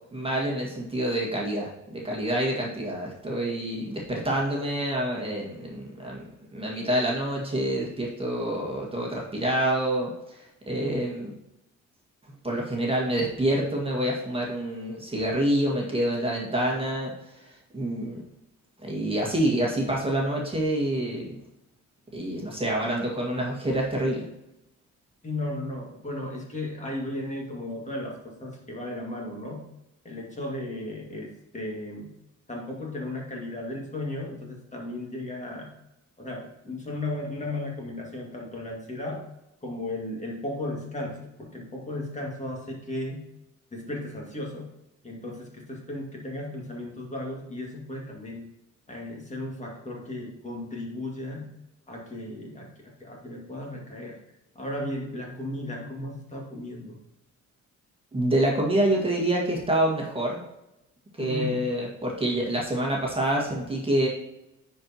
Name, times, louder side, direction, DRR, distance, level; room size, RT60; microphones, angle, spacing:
voice 1, 0.1-6.2 6.5-11.3 12.4-17.1 17.4-18.2 18.8-21.4 22.1-24.2 58.1-60.4 61.2-64.1, right 1 dB, 20° right, -2 dB, 1.7 m, -27 dB
voice 2, 25.2-29.7 30.0-32.1 32.5-35.7 36.2-39.2 39.6-43.3 43.7-44.7 45.0-48.5 48.9-51.6 51.9-54.2 54.6-57.0 61.2-61.6, left 1 dB, 25° left, -1 dB, 2.0 m, -35 dB
9.6 x 4.5 x 2.9 m, 0.89 s
cardioid pair, 90°, 30 cm